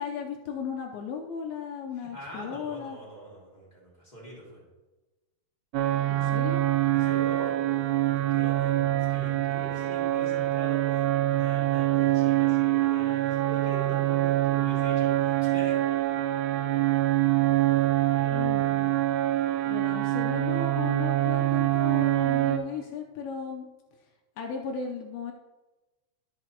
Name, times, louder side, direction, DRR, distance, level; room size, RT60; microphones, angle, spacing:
voice 1, 0.0-3.0 6.1-6.6 17.2-17.3 18.3-18.9 19.7-23.7 24.4-25.3, left 6 dB, 90° left, 1 dB, 2.1 m, -36 dB
voice 2, 1.9-4.6 6.9-7.6 8.1-15.8 18.1-18.5, right 1 dB, 15° left, -7 dB, 1.4 m, -43 dB
sound 1, 5.7-22.6, right 15 dB, 85° right, 3.0 m, -25 dB
14.5 x 5.6 x 3.0 m, 1.1 s
omnidirectional pair, 5.3 m